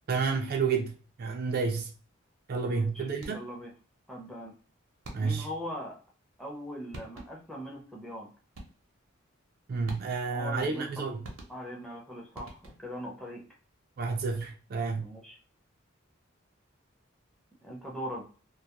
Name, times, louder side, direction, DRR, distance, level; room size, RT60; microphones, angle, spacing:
voice 1, 0.1-1.9 2.5-3.4 5.1-5.5 9.7-11.3 14.0-15.1, right 4 dB, 45° right, 0.3 m, -30 dB
voice 2, 2.7-3.7 4.1-4.5 5.2-6.0 6.4-8.3 10.3-11.0 11.5-13.4 15.0-15.4 17.6-18.2, equal, ahead, 0.6 m, -40 dB
sound 1, 3.2-3.6 5.0-5.6 6.6-6.7 6.9-7.6 8.5-9.0 9.9-10.4 11.2-11.9 12.3-13.0, right 1 dB, 90° right, 0.6 m, -47 dB
2.3 x 2.0 x 2.8 m
head